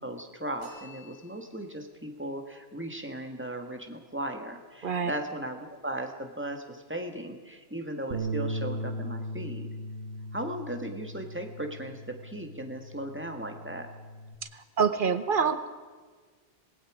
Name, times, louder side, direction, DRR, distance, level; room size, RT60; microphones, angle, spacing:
voice 1, 0.0-9.7 10.3-13.9, right 1 dB, 10° right, 4 dB, 1.8 m, -37 dB
sound 1, 0.6-1.8, left 2 dB, 80° left, 5.6 m, -51 dB
Bass guitar, 8.1-14.4, right 1 dB, 80° right, 1.6 m, -38 dB
voice 2, 14.5-15.7, right 6 dB, 55° right, 11 dB, 1.0 m, -26 dB
26.0 x 19.5 x 5.0 m, 1.4 s
omnidirectional pair, 1.1 m